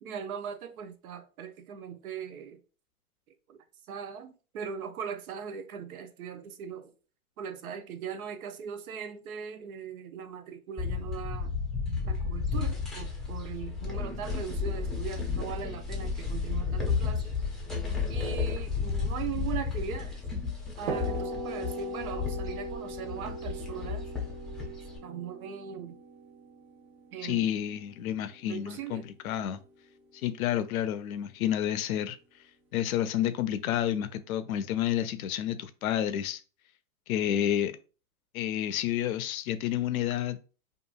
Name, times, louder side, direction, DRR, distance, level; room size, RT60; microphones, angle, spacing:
voice 1, 0.0-2.6 3.5-3.6 3.9-6.9 7.4-11.5 12.0-17.4 18.1-20.2 20.8-24.1 25.0-26.0 27.1-27.5 28.5-29.0 37.3-37.5, right 7 dB, 85° right, 0.6 m, -39 dB
sound 1, 10.8-25.0, left 5 dB, ahead, 0.5 m, -33 dB
sound 2, 20.9-28.6, right 2 dB, 65° right, 1.0 m, -39 dB
voice 2, 27.2-29.6 30.2-32.2 32.7-36.4 37.1-37.7 38.3-40.4, left 11 dB, 75° left, 0.5 m, -30 dB
2.8 x 2.5 x 2.3 m
hypercardioid pair, 115°, 42 cm